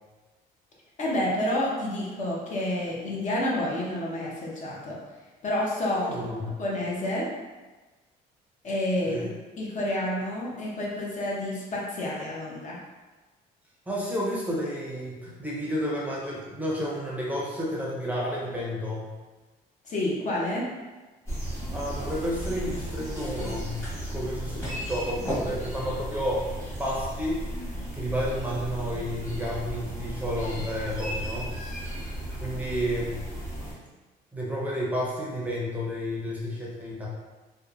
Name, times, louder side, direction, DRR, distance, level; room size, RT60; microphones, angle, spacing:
voice 1, 1.0-5.0 5.4-6.2 6.6-7.3 8.6-9.2 9.6-12.8 19.9-20.7, left 1 dB, 45° left, -4 dB, 0.7 m, -29 dB
voice 2, 6.0-6.5 9.1-9.3 13.9-19.1 21.7-23.8 24.1-26.5 26.8-27.4 27.9-31.5 32.4-33.2 34.3-37.1, equal, 10° right, -5 dB, 0.6 m, -31 dB
sound 1, 21.3-33.7, equal, 15° left, 1.1 m, -34 dB
2.9 x 2.1 x 2.4 m, 1.2 s
cardioid pair, 110°, 17 cm